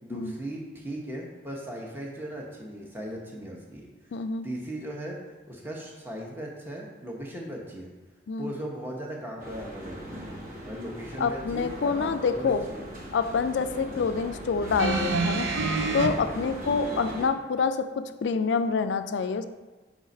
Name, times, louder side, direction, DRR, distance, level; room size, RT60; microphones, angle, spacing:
voice 1, 0.0-4.1 4.4-5.2 5.5-7.9 8.4-12.9 13.8-14.1 16.3-16.9, right 1 dB, 10° right, -2 dB, 0.9 m, -38 dB
voice 2, 4.1-4.5 8.3-8.5 11.2-12.6 13.1-15.5 15.9-19.5, left 5 dB, 70° left, 10 dB, 0.3 m, -27 dB
sound 1, 9.4-17.3, equal, 45° right, 1.1 m, -39 dB
sound 2, 14.8-16.1 17.1-17.2, right 3 dB, 85° right, 0.6 m, -26 dB
4.9 x 3.9 x 5.2 m, 1.2 s
head